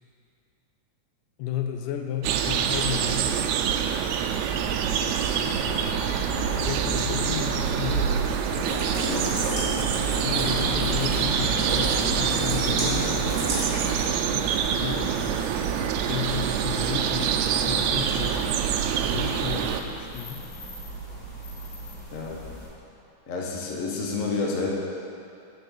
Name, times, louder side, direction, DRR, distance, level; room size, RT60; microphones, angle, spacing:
voice 1, 1.4-3.6 6.6-8.4 10.2-13.4 14.3-18.4 19.0-20.4, left 9 dB, 85° left, 4 dB, 2.4 m, -33 dB
sound 1, 2.2-19.8, right 8 dB, 80° right, 1.7 m, -26 dB
sound 2, 4.5-22.7, right 3 dB, 35° left, 3.5 m, -36 dB
Rain, 8.5-14.1, right 1 dB, 35° right, 3.4 m, -31 dB
voice 2, 23.3-24.7, left 3 dB, 70° left, -2 dB, 0.7 m, -30 dB
9.2 x 6.0 x 8.2 m, 2.6 s
omnidirectional pair, 3.6 m